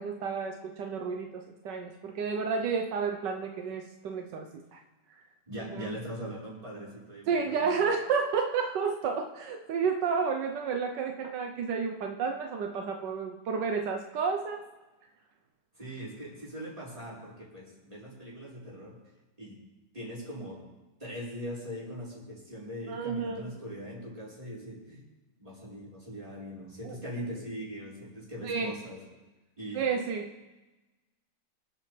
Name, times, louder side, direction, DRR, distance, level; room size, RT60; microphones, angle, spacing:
voice 1, 0.0-4.8 5.7-5.9 7.3-14.7 22.9-23.5 26.8-27.0 28.4-28.7 29.7-30.3, right 5 dB, 80° right, 3 dB, 1.5 m, -31 dB
voice 2, 5.5-7.8 15.8-19.0 19.4-19.6 19.9-20.6 21.0-25.0 25.4-29.0 29.6-29.8, equal, 20° right, -6 dB, 5.2 m, -41 dB
26.0 x 8.8 x 3.3 m, 1.1 s
omnidirectional pair, 1.9 m